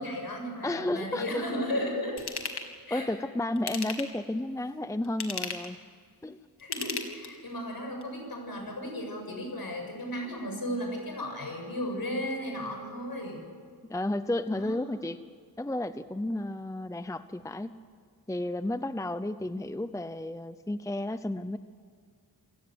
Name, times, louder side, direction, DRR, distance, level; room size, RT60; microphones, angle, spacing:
voice 1, 0.0-2.2 2.9-3.1 6.6-13.4 14.5-14.8, equal, 65° left, 2 dB, 7.2 m, -35 dB
voice 2, 0.6-1.4 2.9-5.8 6.2-6.4 13.9-15.2 15.6-17.7 18.3-21.6, left 1 dB, 10° left, 12 dB, 0.7 m, -32 dB
Ratchet pawl / Tools, 2.2-2.7 3.6-4.3 5.0-5.8 6.6-7.5 8.0-8.1, left 5 dB, 80° left, 2.5 m, -35 dB
28.0 x 17.0 x 7.8 m, 2.1 s
wide cardioid pair, 95°, 39 cm